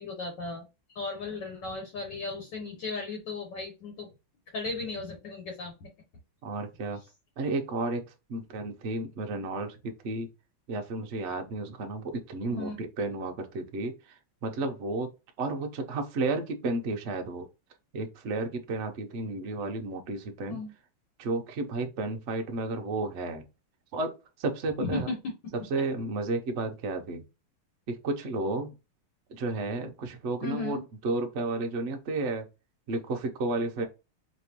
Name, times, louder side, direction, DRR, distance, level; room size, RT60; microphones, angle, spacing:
voice 1, 0.0-4.1 4.5-5.9 12.5-12.8 20.5-20.7 24.8-25.1 30.4-30.8, left 3 dB, 60° left, 1 dB, 1.5 m, -36 dB
voice 2, 6.4-7.0 7.4-10.3 10.7-15.1 15.4-17.5 17.9-20.6 21.2-23.4 23.9-25.1 25.7-27.2 27.9-28.7 29.3-32.5 32.9-33.9, right 2 dB, 75° right, 4 dB, 0.6 m, -32 dB
4.3 x 3.1 x 2.9 m, 0.27 s
omnidirectional pair, 2.3 m